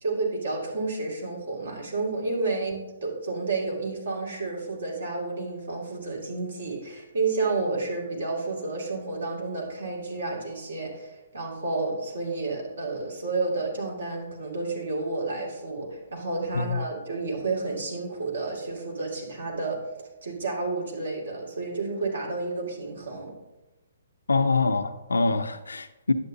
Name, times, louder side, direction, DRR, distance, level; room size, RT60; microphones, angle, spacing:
voice 1, 0.0-23.3, right 3 dB, 80° right, -1 dB, 2.3 m, -31 dB
voice 2, 24.3-26.1, left 3 dB, 85° left, 9 dB, 0.5 m, -25 dB
10.0 x 7.6 x 2.7 m, 1.0 s
hypercardioid pair, 135°, 0 cm